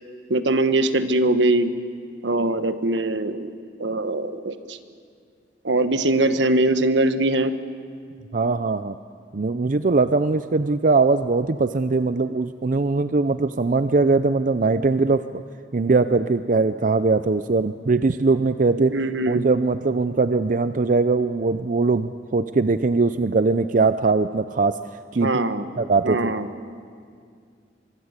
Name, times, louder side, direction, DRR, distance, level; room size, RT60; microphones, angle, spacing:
voice 1, 0.3-1.7 2.2-3.5 3.8-4.8 5.6-7.5 18.9-19.4 25.2-25.7 26.0-26.5, right 2 dB, 75° right, 10 dB, 1.3 m, -22 dB
voice 2, 8.3-9.0 9.3-15.4 15.7-18.9 19.3-24.8 25.1-25.3 25.8-26.3, right 3 dB, 45° right, 12 dB, 0.5 m, -21 dB
24.0 x 23.0 x 8.2 m, 2.2 s
head